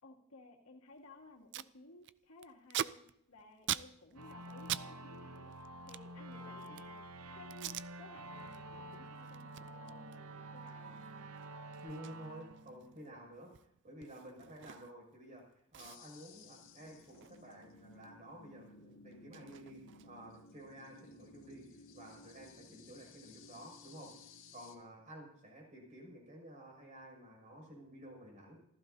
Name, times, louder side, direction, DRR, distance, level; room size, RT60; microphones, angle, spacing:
voice 1, 0.0-5.6 5.9-7.1 7.3-11.0, left 2 dB, 85° left, 1 dB, 2.6 m, -57 dB
Packing tape duct tape, 1.0-1.1 1.3-1.7 2.0-4.9 5.1-7.0 7.5-7.9 8.3-8.6 8.9-15.1 15.4-15.5 15.7-18.1 18.4-20.3, right 11 dB, 55° right, 0.5 m, -45 dB
sound 1, 4.2-13.5, right 1 dB, 85° right, 0.9 m, -49 dB
voice 2, 11.8-13.5 13.8-15.4 15.7-24.1 24.5-28.6, right 1 dB, 35° right, -1 dB, 6.8 m, -52 dB
sound 2, 15.8-24.7, left 3 dB, 65° left, 1.9 m, -58 dB
27.5 x 15.0 x 2.8 m, 0.73 s
head